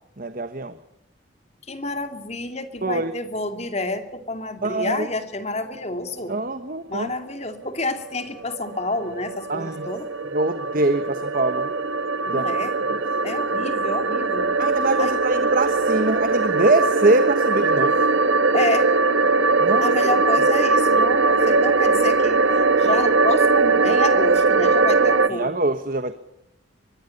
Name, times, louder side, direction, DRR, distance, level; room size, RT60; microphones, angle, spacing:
voice 1, 0.2-0.7 2.8-3.1 4.6-5.1 6.3-7.1 9.5-9.9 10.3-11.7 12.3-13.0 14.6-18.1 19.6-20.5 25.3-26.1, right 2 dB, 45° right, 10 dB, 1.2 m, -24 dB
voice 2, 1.7-6.3 6.9-10.1 12.2-12.7 13.2-14.6 15.0-15.1 18.5-18.9 19.8-22.5 22.8-25.5, left 2 dB, 35° left, 8 dB, 2.5 m, -29 dB
sound 1, 8.0-25.3, right 3 dB, 85° right, 1.6 m, -20 dB
24.5 x 22.0 x 5.4 m, 0.84 s
head